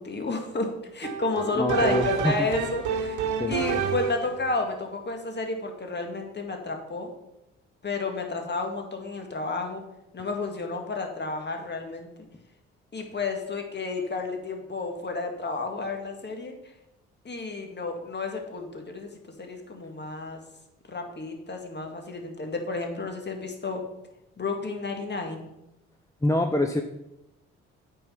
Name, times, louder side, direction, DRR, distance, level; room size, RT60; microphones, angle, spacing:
voice 1, 0.0-3.2 3.5-7.1 7.8-9.8 10.1-12.1 12.9-16.5 17.2-19.1 19.4-20.4 20.9-23.8 24.4-25.5, left 3 dB, 35° left, 3 dB, 2.0 m, -31 dB
sound 1, 1.0-4.4, right 7 dB, 65° right, 1.1 m, -29 dB
voice 2, 1.6-2.5 3.4-3.5 26.2-26.8, left 1 dB, 10° left, 5 dB, 0.7 m, -25 dB
8.7 x 4.8 x 5.8 m, 0.89 s
hypercardioid pair, 50°, 32 cm